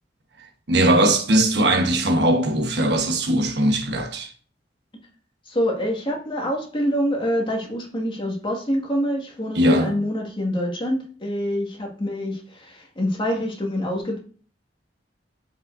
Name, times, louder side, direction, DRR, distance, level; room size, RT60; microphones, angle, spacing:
voice 1, 0.7-4.3 9.5-10.0, right 1 dB, 65° right, 1.2 m, -19 dB
voice 2, 5.5-14.2, equal, 30° left, 1.9 m, -26 dB
11.5 x 5.2 x 2.6 m
head